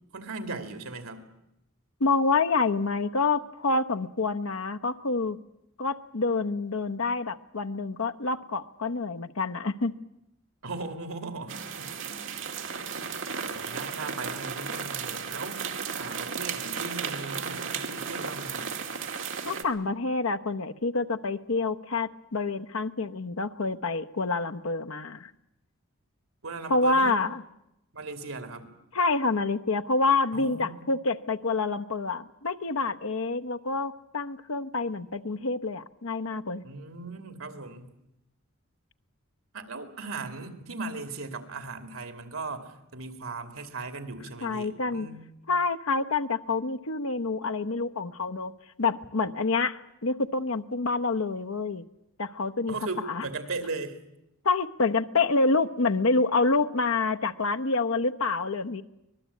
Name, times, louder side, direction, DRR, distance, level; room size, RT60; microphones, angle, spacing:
voice 1, 0.1-1.2 10.6-11.9 13.5-18.8 26.4-27.2 27.9-28.7 30.3-30.8 36.6-37.9 39.5-45.2 52.7-54.0, right 3 dB, 90° right, 8 dB, 2.7 m, -38 dB
voice 2, 2.0-5.4 5.8-9.9 19.4-25.3 26.7-27.4 28.9-36.6 44.4-45.1 45.5-48.5 48.8-51.9 52.2-52.7 53.1-53.2 54.4-58.8, left 3 dB, 85° left, 8 dB, 1.0 m, -27 dB
sound 1, 11.5-19.6, right 6 dB, 65° right, 2.1 m, -34 dB
25.0 x 20.0 x 8.5 m, 0.86 s
head